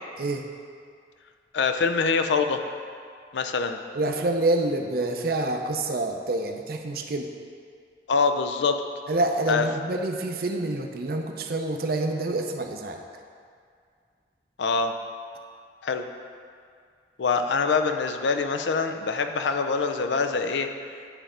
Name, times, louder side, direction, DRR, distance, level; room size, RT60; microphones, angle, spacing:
voice 1, 1.5-2.6 3.3-3.8 8.1-8.8 9.5-9.6 14.6-14.9 15.8-16.0 17.2-20.7, left 4 dB, 90° left, 6 dB, 0.5 m, -24 dB
voice 2, 3.9-7.3 9.1-13.0, right 2 dB, 55° right, 3 dB, 0.6 m, -27 dB
9.9 x 3.3 x 5.0 m, 2.2 s
head